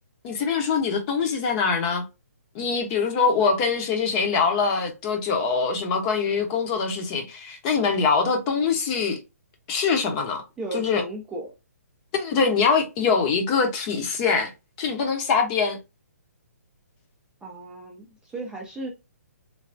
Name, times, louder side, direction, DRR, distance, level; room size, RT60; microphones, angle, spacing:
voice 1, 0.2-2.0 2.5-9.2 9.7-10.4 10.7-11.0 12.1-14.5 14.8-15.8, left 5 dB, 30° left, 0.8 m, -23 dB
voice 2, 10.6-11.5 17.4-18.9, right 2 dB, 10° right, 0.4 m, -35 dB
3.3 x 2.2 x 2.5 m
hypercardioid pair, 140°, 9 cm